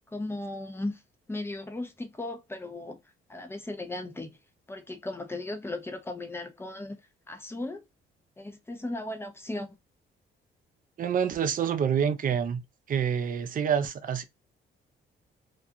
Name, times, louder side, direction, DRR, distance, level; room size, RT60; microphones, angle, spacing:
voice 1, 0.1-1.0 1.3-3.0 3.3-4.4 4.7-7.0 7.3-7.8 8.4-9.7, left 2 dB, 10° left, 0.6 m, -36 dB
voice 2, 11.0-12.6 12.9-14.2, right 7 dB, 45° right, 0.5 m, -27 dB
2.4 x 2.2 x 2.6 m
cardioid pair, 90°, 20 cm